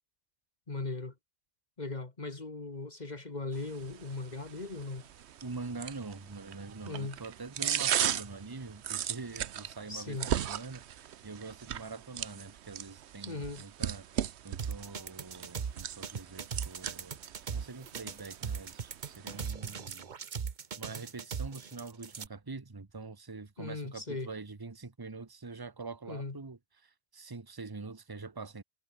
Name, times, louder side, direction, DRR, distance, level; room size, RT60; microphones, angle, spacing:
voice 1, 0.7-1.1 1.8-5.1 6.9-7.2 9.9-10.3 13.3-13.6 23.6-24.3 26.1-26.4, left 3 dB, 40° left, 1.9 m, -38 dB
sound 1, 3.5-19.5, right 10 dB, 75° right, 1.0 m, -38 dB
voice 2, 5.4-17.2 17.5-20.1 20.8-28.6, right 3 dB, 20° right, 1.1 m, -44 dB
sound 2, 14.6-22.3, right 6 dB, 45° right, 1.0 m, -38 dB
omnidirectional pair, 1.1 m